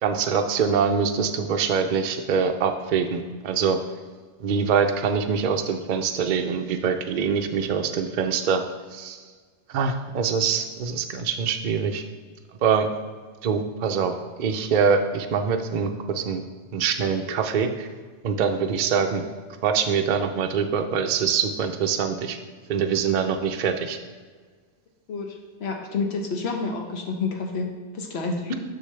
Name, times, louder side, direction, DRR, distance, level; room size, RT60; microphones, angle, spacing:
voice 1, 0.0-3.8 4.4-8.6 8.9-9.2 9.7-12.0 12.6-12.9 13.4-16.4 16.7-17.9 18.2-19.2 19.6-22.4 22.7-24.0, right 6 dB, 55° right, 6 dB, 0.6 m, -24 dB
voice 2, 25.1-28.6, left 4 dB, 65° left, 3 dB, 1.1 m, -29 dB
6.6 x 6.2 x 3.2 m, 1.5 s
omnidirectional pair, 1.2 m